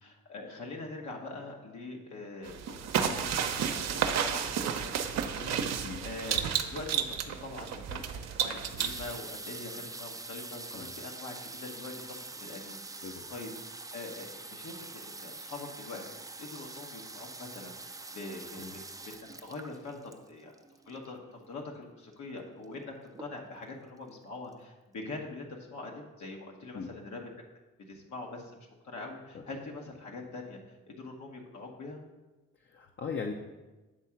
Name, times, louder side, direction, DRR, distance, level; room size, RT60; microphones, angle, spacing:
voice 1, 0.0-13.5 13.9-16.0 16.4-20.5 20.9-22.9 23.2-27.4 27.9-28.5 28.8-32.0, left 3 dB, 70° left, 0 dB, 1.3 m, -43 dB
sound 1, 2.5-9.2, right 8 dB, 60° right, 0.7 m, -32 dB
sound 2, 8.8-21.3 22.1-22.2 22.4-22.8 23.1-23.7 24.2-24.3 24.5-24.6, right 3 dB, 10° right, 0.5 m, -45 dB
voice 2, 32.6-33.3, left 5 dB, 40° left, 2 dB, 0.7 m, -38 dB
8.2 x 3.7 x 5.8 m, 1.1 s
cardioid pair, 90°, 30 cm